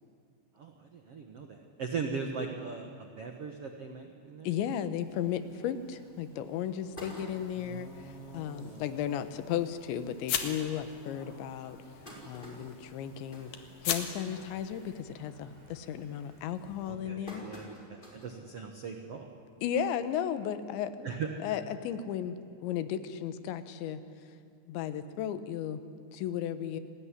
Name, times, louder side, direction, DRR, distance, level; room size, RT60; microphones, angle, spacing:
voice 1, 0.5-4.5 7.5-8.8 16.8-19.3 21.0-21.3, right 5 dB, 70° right, 4 dB, 1.4 m, -40 dB
voice 2, 4.4-11.8 12.3-13.5 13.8-17.5 19.6-21.1 21.4-24.0 24.7-25.8 26.1-26.8, left 9 dB, 85° left, 11 dB, 3.5 m, -35 dB
Speech, 5.0-16.9, equal, 30° right, 7.0 m, -58 dB
sound 1, 6.7-7.8 8.3-8.4 8.7-8.8 9.1-9.3 10.0-10.1 10.7-10.8 11.5-14.3 14.7-15.0 15.4-15.8 16.4-18.4 18.9-19.0 20.1-20.2, right 1 dB, 10° left, 4.8 m, -49 dB
sound 2, 7.3-15.0, left 8 dB, 60° left, 3.3 m, -41 dB
28.5 x 20.0 x 9.9 m, 2.3 s
omnidirectional pair, 5.0 m